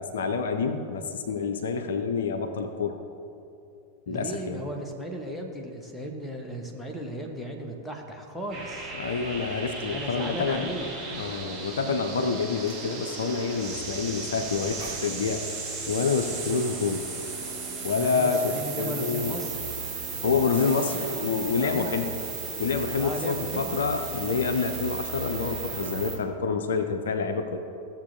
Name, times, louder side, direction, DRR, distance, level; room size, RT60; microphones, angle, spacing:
voice 1, 0.0-3.0 4.1-4.6 8.9-10.7 11.1-15.4 15.9-17.1 17.8-19.4 20.2-22.1 22.6-27.6, left 5 dB, 65° left, 6 dB, 0.6 m, -28 dB
voice 2, 4.1-8.9 9.9-10.9 18.0-19.6 20.5-21.1 21.6-21.9 23.0-23.7, equal, ahead, 0 dB, 1.1 m, -36 dB
sound 1, 8.5-26.2, right 4 dB, 30° right, 1.6 m, -35 dB
sound 2, 12.7-12.9 14.5-15.1 15.4-15.6, right 5 dB, 55° right, 2.1 m, -43 dB
15.5 x 7.1 x 2.7 m, 2.7 s
figure-of-eight pair, 90°, 0 cm